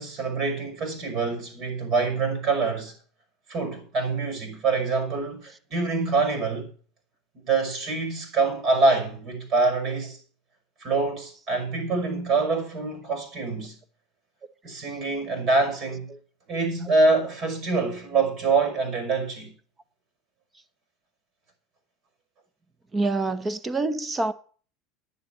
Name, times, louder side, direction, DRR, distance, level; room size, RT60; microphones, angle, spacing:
voice 1, 0.0-2.9 3.5-6.7 7.4-10.2 10.8-13.7 14.6-16.1 16.5-19.5, right 3 dB, 50° right, 5.7 m, -25 dB
voice 2, 22.9-24.3, right 2 dB, 20° right, 1.0 m, -26 dB
10.0 x 7.6 x 8.0 m
supercardioid pair, 100°, 0 cm